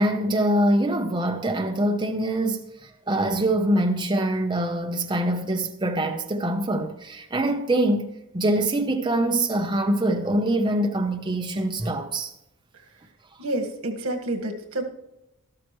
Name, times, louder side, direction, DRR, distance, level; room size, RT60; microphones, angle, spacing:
voice 1, 0.0-12.3, right 1 dB, 20° right, 0.8 m, -24 dB
voice 2, 13.4-14.9, right 1 dB, 90° right, 1.7 m, -29 dB
12.5 x 12.5 x 3.1 m
head